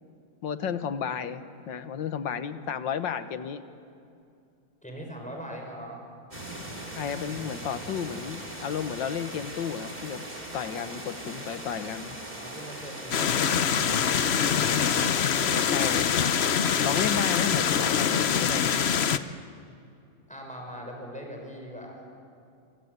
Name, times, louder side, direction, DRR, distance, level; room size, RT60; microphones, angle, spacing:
voice 1, 0.4-3.6 6.9-10.3 10.5-12.2 15.7-16.6 16.8-18.7, left 7 dB, 65° left, 10 dB, 1.8 m, -32 dB
voice 2, 4.8-6.0 12.3-14.8 20.3-22.0, equal, 5° left, 1 dB, 5.9 m, -41 dB
sound 1, 6.3-16.1, right 1 dB, 20° right, 3.7 m, -40 dB
sound 2, 13.1-19.2, left 7 dB, 80° left, 0.5 m, -24 dB
29.5 x 24.5 x 8.2 m, 2.5 s
omnidirectional pair, 2.2 m